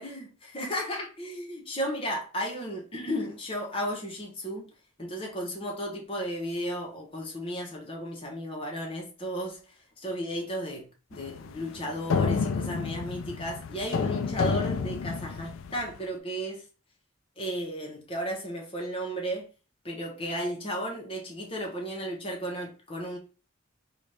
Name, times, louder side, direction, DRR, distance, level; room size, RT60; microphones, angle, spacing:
voice 1, 0.0-4.7 5.0-9.6 10.0-16.6 17.4-19.5 19.8-23.2, equal, 25° left, 1.0 m, -34 dB
sound 1, 11.1-16.0, left 5 dB, 75° left, 0.4 m, -30 dB
4.0 x 2.4 x 3.3 m
head